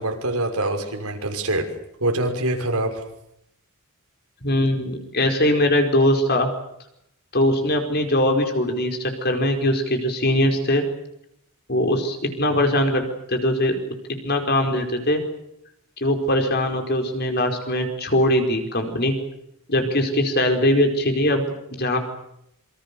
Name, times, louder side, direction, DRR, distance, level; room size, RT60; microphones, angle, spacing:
voice 1, 0.0-1.7 2.0-3.0, right 1 dB, 80° right, 4 dB, 5.8 m, -24 dB
voice 2, 4.4-6.5 7.3-10.8 11.7-13.0 13.3-13.9 14.2-15.2 16.0-19.1 19.7-22.0, left 1 dB, 45° left, 5 dB, 4.8 m, -21 dB
27.0 x 24.5 x 7.0 m, 0.78 s
head